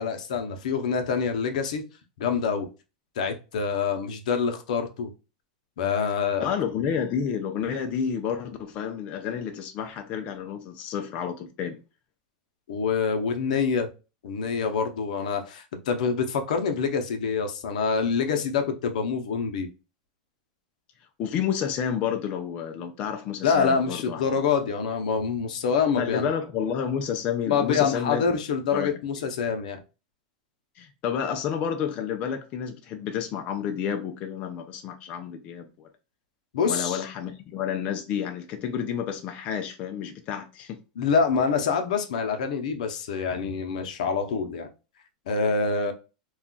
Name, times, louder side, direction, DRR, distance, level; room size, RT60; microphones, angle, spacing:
voice 1, 0.0-1.8 2.2-2.7 3.2-5.1 5.8-6.5 12.7-13.9 14.2-19.7 23.4-26.3 27.5-29.8 36.5-37.0 41.0-44.7 45.3-45.9, left 5 dB, 75° left, 0.6 m, -26 dB
voice 2, 6.4-11.8 21.2-24.2 26.0-28.2 28.7-29.0 30.8-35.9 36.7-40.8, left 8 dB, 35° left, 0.4 m, -30 dB
2.3 x 2.2 x 3.7 m
supercardioid pair, 150°, 4 cm